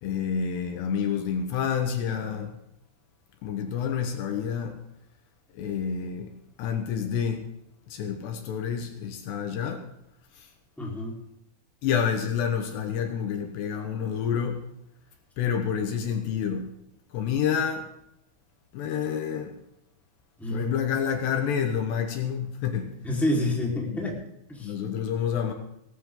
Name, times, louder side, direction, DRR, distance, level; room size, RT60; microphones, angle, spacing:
voice 1, 0.0-2.5 3.4-4.8 5.5-6.3 6.6-7.4 7.9-9.8 10.4-10.5 11.8-14.6 15.4-16.7 17.1-17.9 18.7-19.5 20.5-22.9 23.9-24.1 24.6-25.5, left 7 dB, 75° left, 5 dB, 3.3 m, -28 dB
voice 2, 10.8-11.2 20.4-20.7 23.0-24.1 24.5-24.7, left 1 dB, ahead, -3 dB, 3.6 m, -28 dB
18.5 x 15.5 x 3.9 m, 0.81 s
omnidirectional pair, 5.2 m